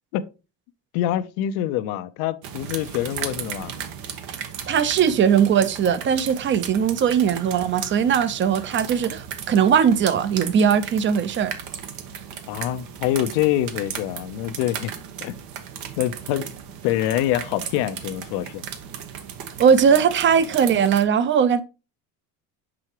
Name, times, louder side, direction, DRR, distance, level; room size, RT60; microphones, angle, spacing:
voice 1, 0.9-3.7 12.5-14.9 15.2-15.4 16.0-16.5 16.8-18.6, left 13 dB, 85° left, 0.7 m, -25 dB
sound 1, 2.4-21.0, right 8 dB, 80° right, 1.2 m, -36 dB
voice 2, 4.7-11.5 19.6-21.6, right 7 dB, 35° right, 0.6 m, -19 dB
6.2 x 5.7 x 2.9 m
cardioid pair, 125°, 36 cm